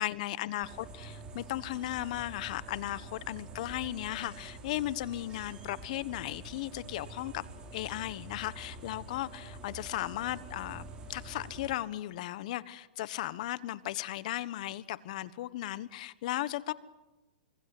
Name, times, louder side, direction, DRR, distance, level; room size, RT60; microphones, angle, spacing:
voice 1, 0.0-7.4 7.7-16.7, left 15 dB, 50° left, 17 dB, 1.3 m, -36 dB
sound 1, 0.6-11.7, right 3 dB, 20° right, 4.1 m, -47 dB
26.0 x 23.5 x 8.0 m, 1.1 s
hypercardioid pair, 145°, 5 cm